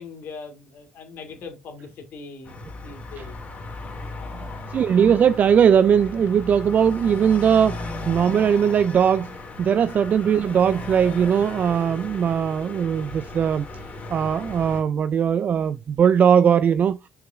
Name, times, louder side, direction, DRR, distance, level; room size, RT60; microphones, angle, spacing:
voice 1, 0.0-3.4 4.1-4.6, left 4 dB, 60° left, 2.5 m, -41 dB
sound 1, 2.4-14.8, left 2 dB, 40° left, 2.9 m, -36 dB
voice 2, 4.4-13.7 14.1-17.0, right 8 dB, 45° right, 0.4 m, -20 dB
6.1 x 4.9 x 3.6 m
supercardioid pair, 75°, 4 cm